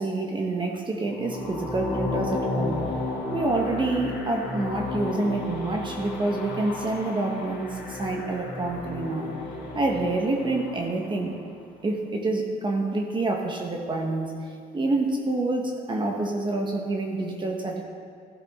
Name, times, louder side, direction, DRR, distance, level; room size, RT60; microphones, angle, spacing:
voice 1, 0.0-2.9 3.3-9.3 9.7-11.3 11.8-14.3 14.7-17.8, right 2 dB, 30° right, 1 dB, 1.3 m, -27 dB
sound 1, 1.0-11.2, left 2 dB, 85° left, 2.5 m, -33 dB
15.0 x 12.5 x 3.7 m, 2.2 s
cardioid pair, 110°, 17 cm